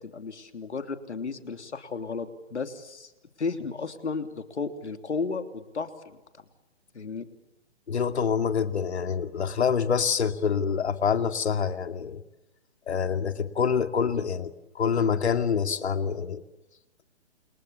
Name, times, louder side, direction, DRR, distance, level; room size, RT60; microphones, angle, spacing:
voice 1, 0.0-3.1 3.4-6.2 6.9-7.3, left 4 dB, 90° left, 8 dB, 3.2 m, -34 dB
voice 2, 7.9-12.2 12.9-16.4, left 6 dB, 75° left, 8 dB, 2.5 m, -26 dB
29.0 x 29.0 x 7.1 m, 1.0 s
hypercardioid pair, 145°, 33 cm